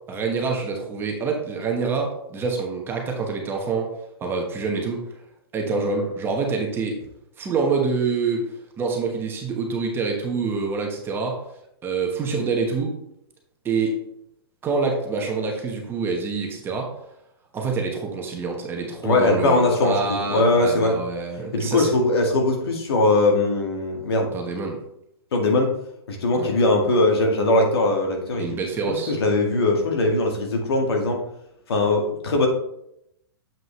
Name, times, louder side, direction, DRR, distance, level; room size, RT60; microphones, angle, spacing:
voice 1, 0.1-3.9 4.2-5.0 5.5-7.0 7.4-11.4 11.8-13.0 13.6-14.0 14.6-16.9 17.5-21.9 24.3-24.8 26.3-26.5 28.4-29.1, right 4 dB, 15° right, 1 dB, 1.1 m, -26 dB
voice 2, 19.0-21.0 21.5-24.3 25.3-25.7 26.1-28.5 28.9-31.2 31.7-32.5, left 2 dB, 70° left, 2 dB, 1.8 m, -20 dB
7.6 x 5.2 x 3.2 m, 0.78 s
hypercardioid pair, 140°, 13 cm